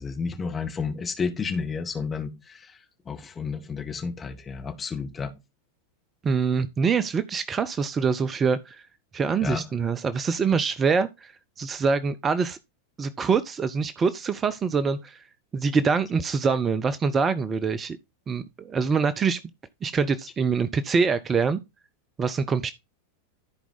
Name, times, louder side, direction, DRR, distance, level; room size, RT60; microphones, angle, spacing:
voice 1, 0.0-2.8 3.1-5.3 9.4-9.6, left 5 dB, 20° left, 1.9 m, -31 dB
voice 2, 6.2-8.8 9.1-12.6 13.0-15.2 15.5-18.0 18.3-19.4 19.8-21.6 22.2-22.7, right 5 dB, 20° right, 0.6 m, -25 dB
14.0 x 4.7 x 4.0 m
figure-of-eight pair, 90°, 0 cm